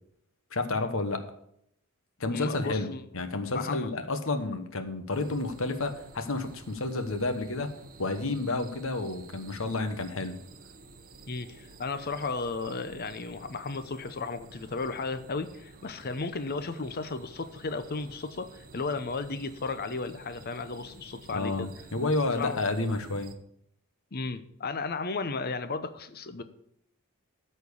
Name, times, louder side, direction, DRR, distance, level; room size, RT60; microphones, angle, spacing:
voice 1, 0.5-1.2 2.2-7.7 8.0-10.4 21.3-23.3, left 2 dB, 65° left, 8 dB, 1.1 m, -30 dB
voice 2, 2.3-3.0 3.5-3.9 11.3-21.7 22.3-22.6 24.1-26.4, left 3 dB, 45° left, 10 dB, 0.7 m, -34 dB
sound 1, 5.1-23.3, right 3 dB, 40° right, 0.9 m, -51 dB
13.0 x 4.5 x 7.0 m, 0.74 s
head